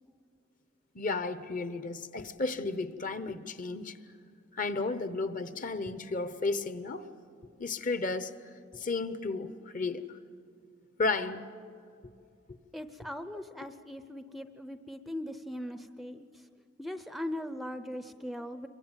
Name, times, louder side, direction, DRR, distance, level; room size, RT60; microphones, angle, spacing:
voice 1, 0.9-4.0 4.5-7.1 7.6-8.3 8.7-10.2 11.0-11.4, left 3 dB, 45° left, 0.9 m, -33 dB
voice 2, 12.7-16.5 16.8-18.7, left 1 dB, ahead, 0.5 m, -40 dB
26.5 x 22.5 x 9.0 m
head